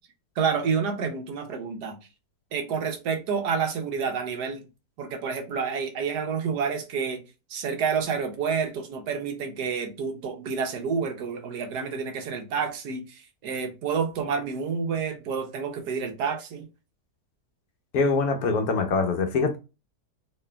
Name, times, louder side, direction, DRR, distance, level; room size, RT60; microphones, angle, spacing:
voice 1, 0.4-2.0 2.5-4.7 5.0-7.2 7.5-16.7, right 6 dB, 80° right, 1.4 m, -29 dB
voice 2, 17.9-19.6, left 4 dB, 70° left, 1.1 m, -23 dB
4.0 x 3.2 x 2.2 m
omnidirectional pair, 1.7 m